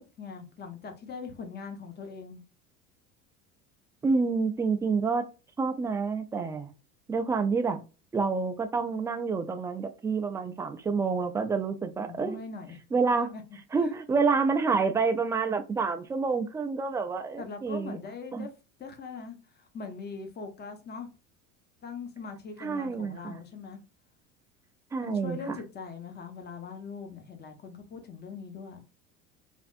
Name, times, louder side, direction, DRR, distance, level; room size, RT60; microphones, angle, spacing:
voice 1, 0.0-2.4 12.0-12.8 13.1-13.4 13.8-13.9 17.4-18.5 18.8-21.1 21.8-23.8 25.0-28.8, left 4 dB, 25° left, 0.9 m, -41 dB
voice 2, 4.0-5.2 5.6-6.7 7.1-7.8 8.1-12.4 12.9-13.3 13.7-18.0 18.3-18.5 22.6-23.4 24.9-25.6, right 4 dB, 10° right, 0.3 m, -28 dB
3.4 x 2.4 x 2.4 m
hypercardioid pair, 75°, 42 cm